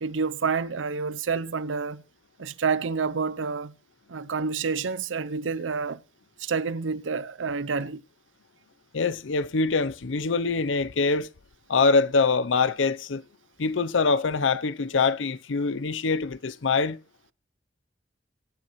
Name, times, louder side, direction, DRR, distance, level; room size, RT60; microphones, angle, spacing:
voice 1, 0.0-2.0 2.4-3.7 4.1-6.0 6.4-8.0, right 5 dB, 80° right, 0.6 m, -28 dB
voice 2, 8.9-11.3 11.7-13.2 13.6-17.0, left 4 dB, 85° left, 0.6 m, -24 dB
23.5 x 9.0 x 3.1 m
head